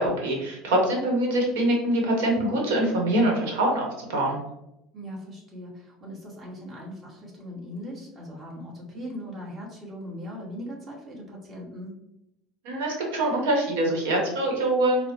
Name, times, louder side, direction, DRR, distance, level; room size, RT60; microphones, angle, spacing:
voice 1, 0.0-4.4 12.6-15.1, right 1 dB, 90° right, 0 dB, 1.0 m, -24 dB
voice 2, 4.9-11.9, equal, 30° right, -3 dB, 1.3 m, -39 dB
4.2 x 2.1 x 2.9 m, 0.85 s
supercardioid pair, 115°, 0 cm